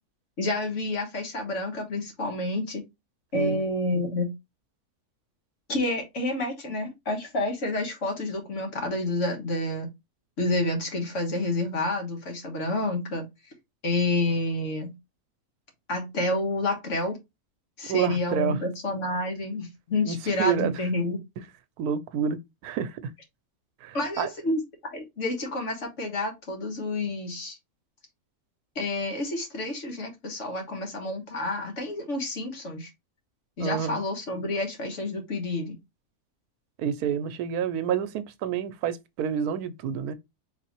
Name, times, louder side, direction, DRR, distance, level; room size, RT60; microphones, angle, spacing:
voice 1, 0.4-2.8 3.3-4.3 5.7-9.9 10.4-13.2 13.8-14.9 15.9-17.2 17.8-21.2 23.9-27.6 28.7-32.9 33.6-35.8, left 2 dB, 55° left, 1.5 m, -29 dB
voice 2, 17.9-18.6 20.0-20.7 21.8-22.4 22.6-23.1 23.8-24.3 33.6-34.0 36.8-40.1, right 8 dB, 90° right, 1.1 m, -28 dB
4.3 x 3.3 x 2.9 m
omnidirectional pair, 1.5 m